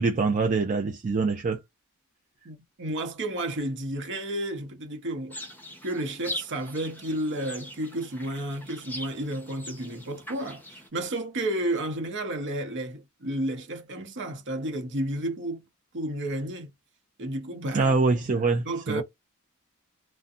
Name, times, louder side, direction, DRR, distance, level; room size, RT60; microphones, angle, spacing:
voice 1, 0.0-1.6 17.7-19.0, right 4 dB, 35° right, 0.4 m, -24 dB
voice 2, 2.4-5.5 5.8-15.6 15.9-16.7 17.2-17.9 18.6-19.0, right 1 dB, 55° right, 0.8 m, -32 dB
sound 1, 5.3-10.9, equal, 10° left, 0.9 m, -41 dB
2.6 x 2.2 x 2.5 m
head